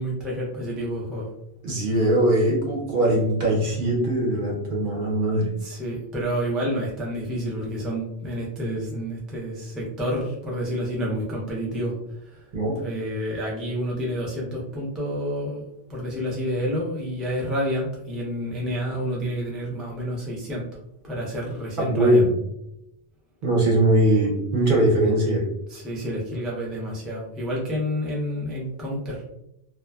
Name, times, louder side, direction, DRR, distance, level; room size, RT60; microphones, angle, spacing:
voice 1, 0.0-1.3 5.6-15.6 15.9-20.6 21.0-22.3 25.7-29.2, equal, ahead, -4 dB, 0.3 m, -29 dB
voice 2, 1.6-5.5 12.5-12.7 21.8-22.2 23.4-25.4, right 1 dB, 55° right, -3 dB, 0.8 m, -21 dB
2.6 x 2.2 x 2.2 m, 0.83 s
omnidirectional pair, 1.1 m